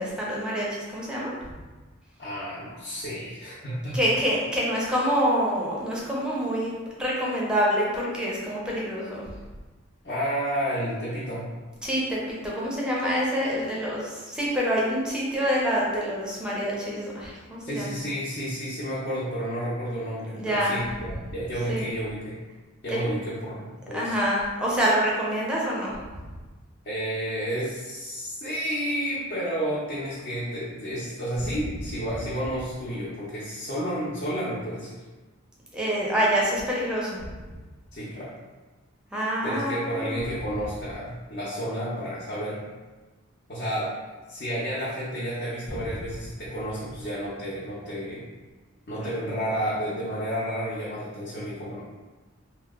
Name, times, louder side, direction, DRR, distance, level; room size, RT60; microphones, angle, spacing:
voice 1, 0.0-1.3 3.9-9.2 11.8-17.9 20.4-20.8 21.7-21.9 23.9-25.9 35.7-37.2 39.1-40.1 49.0-49.1, equal, 5° right, -5 dB, 0.5 m, -26 dB
voice 2, 2.2-4.0 10.0-11.5 17.6-22.4 22.8-24.2 26.8-35.0 37.9-38.3 39.4-42.6 43.5-43.9 44.3-48.3 48.9-51.8, equal, 50° left, -9 dB, 0.6 m, -31 dB
2.8 x 2.0 x 3.5 m, 1.3 s
head